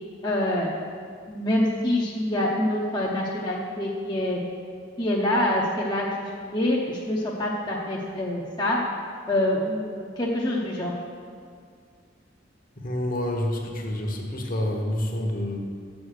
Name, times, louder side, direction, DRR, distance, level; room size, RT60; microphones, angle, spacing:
voice 1, 0.2-0.7 1.3-4.4 5.0-6.1 6.4-8.8 9.3-10.9, left 1 dB, 20° left, -4 dB, 0.7 m, -26 dB
voice 2, 12.8-15.6, left 1 dB, 45° left, 2 dB, 1.1 m, -28 dB
6.9 x 6.4 x 6.4 m, 2.2 s
head